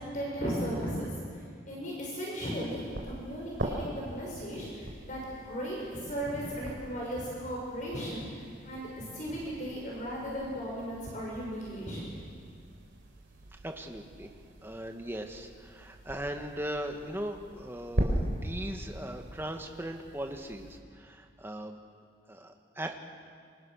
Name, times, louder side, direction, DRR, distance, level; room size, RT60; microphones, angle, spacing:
voice 1, 0.1-12.1, equal, 40° left, -4 dB, 6.1 m, -36 dB
sound 1, 2.5-20.8, equal, 60° right, 4.3 m, -40 dB
voice 2, 13.6-14.3 14.6-21.8 22.3-23.0, right 1 dB, 10° right, 4 dB, 1.7 m, -39 dB
27.5 x 26.5 x 6.5 m, 2.1 s
head